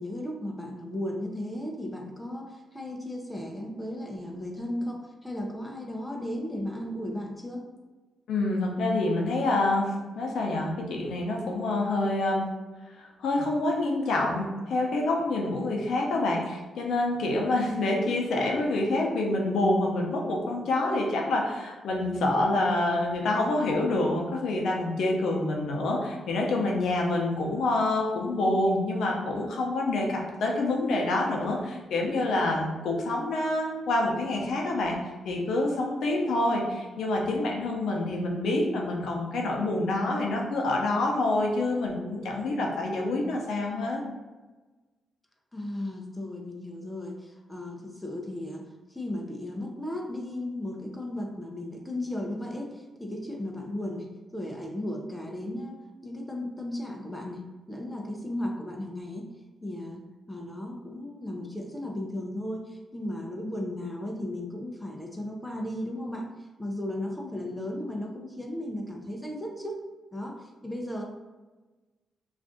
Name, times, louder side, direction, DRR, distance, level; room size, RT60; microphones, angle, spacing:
voice 1, 0.0-7.7 45.5-48.6 48.9-59.3 59.6-60.0 60.3-69.8 70.1-71.0, left 1 dB, 10° left, 0 dB, 0.4 m, -35 dB
voice 2, 8.3-9.9 10.1-12.4 13.0-35.0 35.2-44.0, left 2 dB, 80° left, -1 dB, 0.6 m, -27 dB
2.5 x 2.4 x 3.5 m, 1.2 s
cardioid pair, 95°, 0 cm